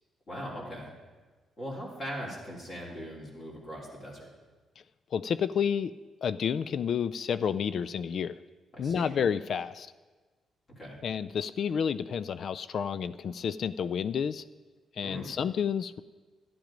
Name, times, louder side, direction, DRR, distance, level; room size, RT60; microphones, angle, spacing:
voice 1, 0.3-0.9 1.6-4.3 8.7-9.1 10.7-11.0 15.0-15.3, equal, 35° left, -5 dB, 3.5 m, -40 dB
voice 2, 5.1-5.9 6.2-8.4 8.8-9.9 11.0-14.4 14.9-16.0, left 7 dB, 60° left, 15 dB, 0.3 m, -30 dB
11.5 x 10.5 x 5.2 m, 1.3 s
cardioid pair, 90°, 0 cm